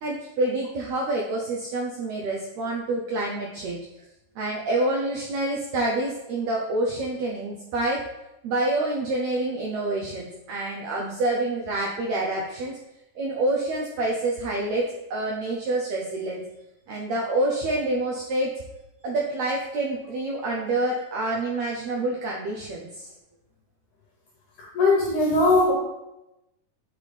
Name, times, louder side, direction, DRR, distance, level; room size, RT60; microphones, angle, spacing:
voice 1, 0.0-3.8 4.4-8.0 8.4-12.7 13.2-14.8 15.1-16.4 16.9-18.5 19.0-23.1, right 2 dB, 90° right, -1 dB, 1.5 m, -27 dB
voice 2, 24.6-25.7, left 2 dB, 70° left, -3 dB, 2.2 m, -20 dB
7.7 x 5.2 x 3.3 m, 0.95 s
omnidirectional pair, 4.2 m